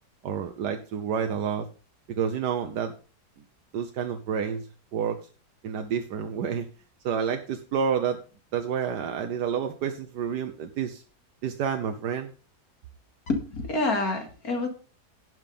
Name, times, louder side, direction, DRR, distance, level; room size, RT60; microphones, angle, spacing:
voice 1, 0.2-1.7 2.1-2.9 3.7-4.7 4.9-5.3 5.6-6.7 7.0-8.2 8.5-11.0 11.4-12.3, right 7 dB, 90° right, 6 dB, 1.5 m, -29 dB
voice 2, 13.3-14.7, left 2 dB, 65° left, 4 dB, 2.6 m, -27 dB
11.0 x 6.3 x 5.4 m, 0.36 s
omnidirectional pair, 1.7 m